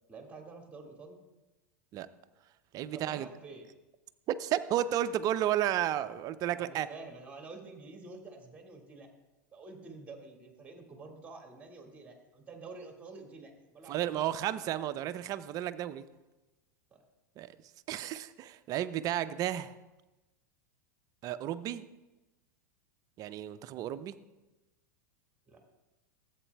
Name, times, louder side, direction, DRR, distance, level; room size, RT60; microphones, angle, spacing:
voice 1, 0.1-1.2 2.9-3.7 6.6-9.1 9.5-14.1 16.9-17.1 25.5-25.6, right 3 dB, 15° right, 2 dB, 1.9 m, -48 dB
voice 2, 2.7-3.3 4.3-6.9 13.9-16.0 17.4-17.6 17.9-19.7 21.2-21.8 23.2-24.2, right 11 dB, 40° right, 13 dB, 0.5 m, -32 dB
13.5 x 8.0 x 2.3 m, 1.1 s
hypercardioid pair, 95°, 10 cm